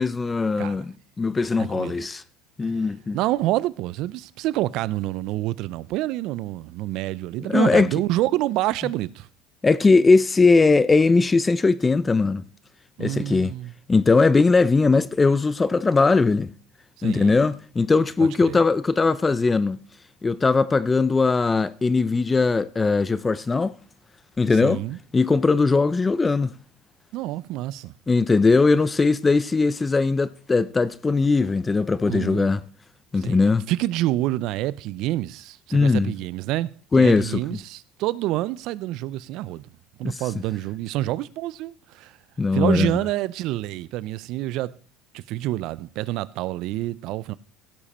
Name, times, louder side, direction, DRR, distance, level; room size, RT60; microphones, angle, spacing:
voice 1, 0.0-2.2 2.6-3.2 7.5-7.9 9.6-12.5 13.0-13.5 13.9-16.5 17.0-19.8 20.2-23.8 24.4-24.8 25.1-26.6 28.1-32.6 33.1-33.6 35.7-36.1 36.9-37.4 40.0-40.2 42.4-43.0, left 4 dB, 20° left, 0.6 m, -20 dB
voice 2, 1.6-2.0 3.1-9.3 13.0-13.7 17.0-17.4 18.2-18.6 24.6-25.0 27.1-27.9 32.1-32.5 33.1-33.4 33.7-36.7 37.0-39.7 40.0-42.2 42.5-44.7 45.1-47.3, right 16 dB, 65° right, 0.5 m, -27 dB
16.5 x 7.3 x 4.3 m
supercardioid pair, 95°, 0 cm